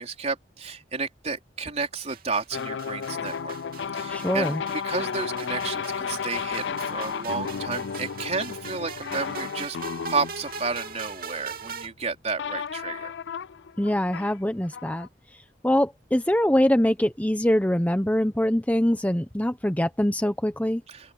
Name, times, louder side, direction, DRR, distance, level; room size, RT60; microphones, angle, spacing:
voice 1, 0.0-3.6 3.9-9.8 10.1-13.1 20.9-21.1, right 4 dB, 40° right, 4.2 m, -32 dB
sound 1, 2.1-11.9, right 6 dB, 55° right, 3.0 m, -42 dB
sound 2, 2.5-11.7 12.4-15.1, left 6 dB, 75° left, 0.5 m, -33 dB
voice 2, 4.1-4.6 13.8-20.8, left 1 dB, 10° left, 0.9 m, -24 dB
head